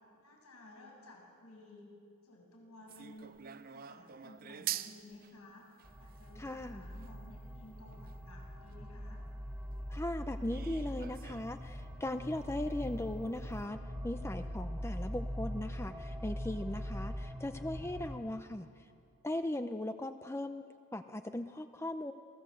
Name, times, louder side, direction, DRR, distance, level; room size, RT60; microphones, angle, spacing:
voice 1, 0.2-1.9 2.2-3.4 3.7-5.6 6.0-9.2 16.9-17.0, left 1 dB, 85° left, -1 dB, 7.4 m, -55 dB
ambientecocina tv-tetera, 2.9-8.7 9.2-9.3 9.7-9.8 10.5-11.7 11.9-12.0 12.3-12.4 13.0-13.1 13.3-13.5, right 11 dB, 40° right, 0.6 m, -45 dB
sound 1, 5.8-18.2, equal, 5° right, 2.0 m, -42 dB
voice 2, 6.4-6.8 9.9-18.9 19.2-20.6 20.9-22.1, left 1 dB, 10° left, 8 dB, 0.6 m, -38 dB
28.0 x 18.5 x 7.8 m, 2.4 s
head